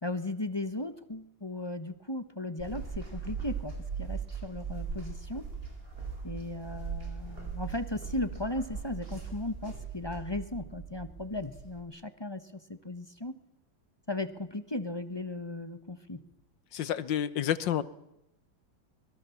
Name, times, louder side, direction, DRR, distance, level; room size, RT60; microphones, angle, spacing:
voice 1, 0.0-5.5 6.2-13.4 14.1-16.2, left 2 dB, 20° left, 10 dB, 0.8 m, -36 dB
sound 1, 2.6-11.8, right 6 dB, 25° right, 4.8 m, -39 dB
voice 2, 16.7-17.8, left 10 dB, 70° left, 15 dB, 1.7 m, -29 dB
24.5 x 21.5 x 7.2 m, 0.85 s
omnidirectional pair, 2.2 m